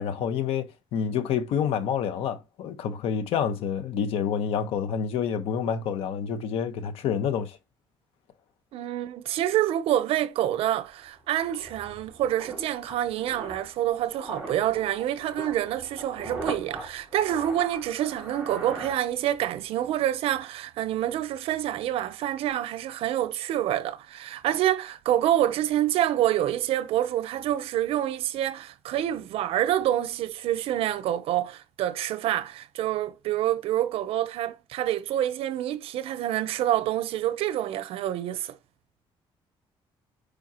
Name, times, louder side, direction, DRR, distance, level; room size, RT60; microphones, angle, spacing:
voice 1, 0.0-7.6, left 7 dB, 75° left, 1.3 m, -28 dB
voice 2, 8.7-38.5, right 12 dB, 75° right, 0.9 m, -27 dB
sound 1, 10.6-19.6 19.8-20.1, right 1 dB, 10° right, 3.9 m, -41 dB
9.1 x 5.1 x 3.0 m
cardioid pair, 175°, 10 cm